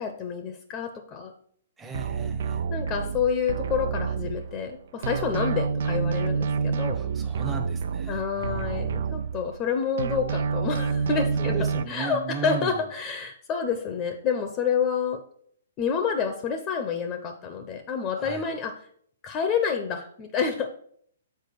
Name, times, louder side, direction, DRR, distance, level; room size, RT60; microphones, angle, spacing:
voice 1, 0.0-1.3 2.7-7.0 8.1-11.6 11.9-15.2 15.8-18.8 19.2-20.7, left 6 dB, 30° left, 7 dB, 0.8 m, -28 dB
voice 2, 1.8-2.7 6.9-9.1 11.4-12.8 18.1-18.5, right 5 dB, 10° right, 3 dB, 0.9 m, -36 dB
sound 1, 1.9-4.7 5.0-9.7 10.0-11.8, right 6 dB, 60° right, 0.4 m, -28 dB
6.8 x 4.6 x 4.7 m, 0.62 s
hypercardioid pair, 125°, 0 cm